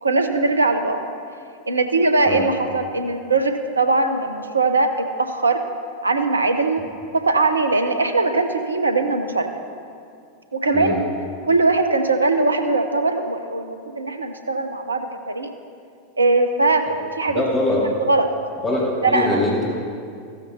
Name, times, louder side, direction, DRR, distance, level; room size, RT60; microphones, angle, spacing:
voice 1, 0.0-1.0 1.7-5.6 6.0-6.8 7.1-9.5 10.5-11.0 11.4-15.5 16.2-17.4 17.8-18.3 19.0-19.4, right 3 dB, 80° right, 7 dB, 0.9 m, -20 dB
voice 2, 17.3-17.8 18.6-19.7, left 2 dB, 20° left, -5 dB, 2.4 m, -22 dB
15.5 x 13.0 x 2.8 m, 2.4 s
figure-of-eight pair, 90°, 0 cm